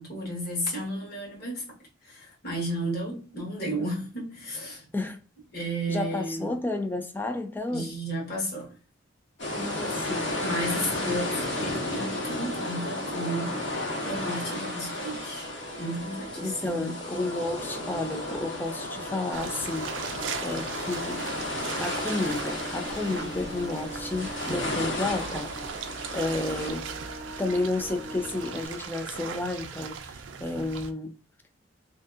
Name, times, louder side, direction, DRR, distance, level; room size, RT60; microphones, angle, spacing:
voice 1, 0.0-1.6 2.0-4.9 5.5-6.5 7.7-8.7 10.4-13.6 14.0-15.5 15.8-17.0, right 1 dB, 55° left, 1.2 m, -33 dB
voice 2, 5.9-7.9 9.6-10.3 16.4-19.9 20.4-21.2 21.8-25.5 26.1-26.9 27.4-31.1, left 2 dB, 10° left, 0.3 m, -31 dB
sound 1, 9.4-26.7, left 2 dB, 75° left, 1.3 m, -33 dB
sound 2, 10.1-28.7, right 2 dB, 55° right, 0.8 m, -43 dB
sound 3, 19.3-30.9, right 6 dB, 85° right, 0.4 m, -39 dB
2.6 x 2.5 x 2.4 m
head